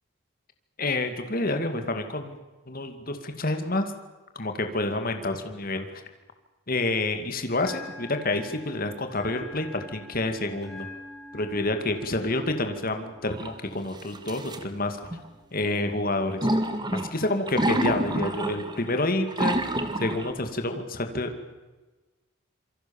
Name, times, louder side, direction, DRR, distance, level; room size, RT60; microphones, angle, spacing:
voice 1, 0.8-2.4 2.7-3.9 4.4-6.0 6.7-10.9 11.3-15.0 15.5-16.4 16.9-19.7 20.0-21.3, left 2 dB, 40° left, 6 dB, 2.4 m, -28 dB
Bell, 7.5-15.5, left 2 dB, ahead, 4.1 m, -47 dB
sound 1, 13.3-13.5 14.1-14.6 15.0-15.2 16.4-18.9 19.3-20.3, right 1 dB, 20° right, 1.9 m, -27 dB
27.0 x 23.5 x 7.2 m, 1.2 s
head